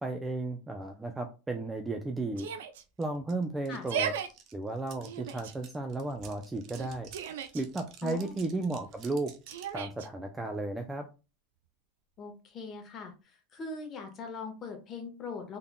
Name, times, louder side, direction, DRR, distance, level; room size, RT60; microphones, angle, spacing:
voice 1, 0.0-2.5 3.0-4.1 4.5-7.1 7.5-9.3 9.7-11.0, right 2 dB, 10° right, 5 dB, 0.5 m, -34 dB
Yell, 2.4-2.8 3.7-4.3 5.0-5.5 6.7-7.6 9.5-10.1, right 7 dB, 80° right, 0.5 m, -35 dB
sound 1, 3.0-3.1 3.3-9.8, right 8 dB, 50° right, 0.8 m, -52 dB
voice 2, 8.0-8.4 12.2-15.6, left 4 dB, 35° left, 3 dB, 1.3 m, -41 dB
3.6 x 3.6 x 2.2 m, 0.31 s
supercardioid pair, 110°, 0 cm